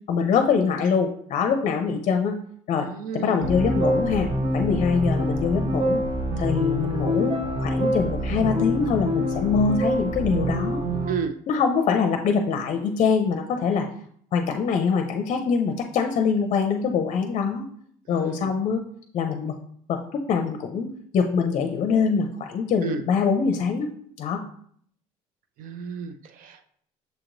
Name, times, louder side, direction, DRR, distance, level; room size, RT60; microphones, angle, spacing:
voice 1, 0.1-2.4 2.7-2.9 3.1-4.3 4.5-6.0 6.4-10.8 11.5-13.9 14.3-17.6 18.1-18.8 19.1-19.5 19.9-23.9 24.2-24.4, left 5 dB, 50° left, 5 dB, 0.5 m, -24 dB
voice 2, 2.7-3.4 11.1-11.3 18.1-18.5 22.8-23.0 25.6-26.7, right 7 dB, 65° right, 9 dB, 0.6 m, -32 dB
sound 1, 3.4-11.1, equal, 30° right, 0.7 m, -25 dB
6.8 x 2.9 x 2.6 m, 0.62 s
cardioid pair, 105°, 15 cm